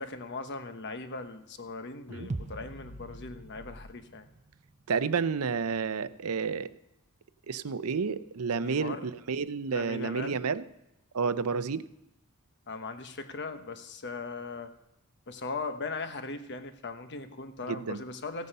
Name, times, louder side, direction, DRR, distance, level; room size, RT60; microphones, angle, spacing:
voice 1, 0.0-4.3 8.6-9.1 9.7-10.4 12.7-14.7 15.3-18.5, left 3 dB, 50° left, 8 dB, 1.1 m, -39 dB
sound 1, 2.1-3.9, left 2 dB, 80° left, 0.8 m, -48 dB
sound 2, 2.3-6.2 6.5-6.6, right 3 dB, 30° right, 0.5 m, -44 dB
voice 2, 4.9-6.7 7.5-10.6 11.1-11.8 17.7-18.0, right 5 dB, 75° right, 14 dB, 0.6 m, -30 dB
15.5 x 9.5 x 5.5 m, 0.86 s
head